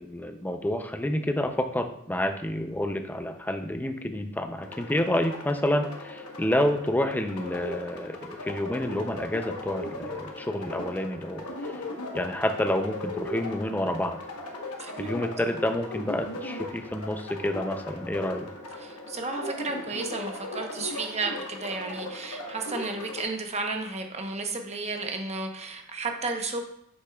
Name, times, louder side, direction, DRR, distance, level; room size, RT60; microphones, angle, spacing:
voice 1, 0.0-11.8 12.1-14.2 15.0-18.5, left 1 dB, 10° left, 7 dB, 0.5 m, -29 dB
sound 1, 4.6-23.2, left 1 dB, 80° left, 1.1 m, -38 dB
voice 2, 18.8-26.6, right 3 dB, 30° right, 3 dB, 0.9 m, -33 dB
8.0 x 6.6 x 2.3 m, 0.76 s
head